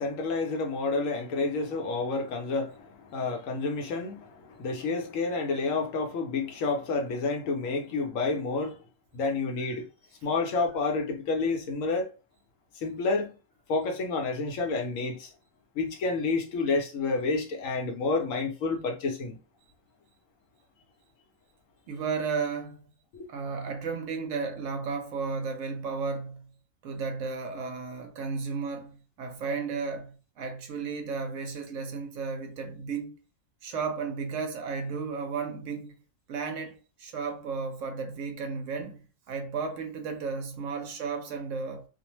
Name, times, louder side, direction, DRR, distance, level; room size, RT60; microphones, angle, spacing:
voice 1, 0.0-8.8 9.1-9.9 10.2-12.1 12.8-13.3 13.7-15.3 15.7-19.4 23.1-23.3, left 3 dB, 70° left, 1.0 m, -29 dB
voice 2, 21.9-22.8 23.3-26.5 26.8-33.2 33.6-35.9 36.3-41.9, right 5 dB, 70° right, 0.9 m, -34 dB
2.6 x 2.1 x 2.9 m
omnidirectional pair, 1.5 m